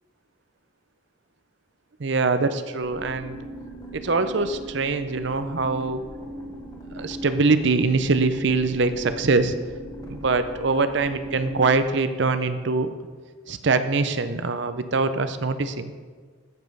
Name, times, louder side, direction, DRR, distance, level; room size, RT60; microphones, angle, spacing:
voice 1, 2.0-3.4 3.9-6.0 6.9-9.6 10.1-12.9 13.5-15.9, right 3 dB, 55° right, 10 dB, 0.6 m, -23 dB
sound 1, 2.8-11.8, equal, 20° left, 1.1 m, -38 dB
14.0 x 5.4 x 5.4 m, 1.5 s
head